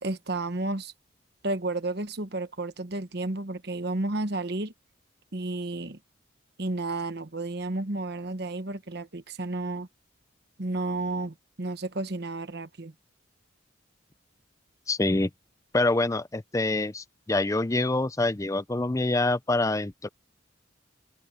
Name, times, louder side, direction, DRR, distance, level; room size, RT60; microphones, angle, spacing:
voice 1, 0.0-0.9 1.4-4.7 5.3-6.0 6.6-9.9 10.6-12.9, right 2 dB, 55° right, 1.1 m, -32 dB
voice 2, 14.9-15.3 15.7-20.1, left 2 dB, 15° left, 0.5 m, -26 dB
head